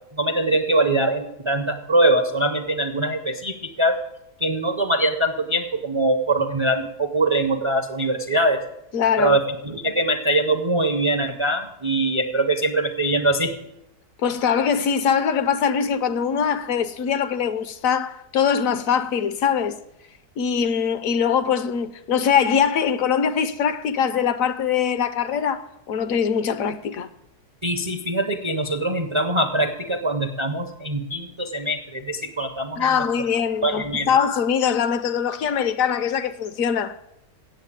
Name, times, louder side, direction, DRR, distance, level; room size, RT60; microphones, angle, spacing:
voice 1, 0.1-4.0 4.4-8.6 9.2-13.5 27.6-32.9 33.6-34.1, right 1 dB, 40° right, 0.4 m, -22 dB
voice 2, 8.9-9.4 14.2-19.8 20.4-25.6 25.9-27.1 32.8-37.0, left 7 dB, 70° left, 1.0 m, -22 dB
9.0 x 7.4 x 8.6 m
omnidirectional pair, 1.6 m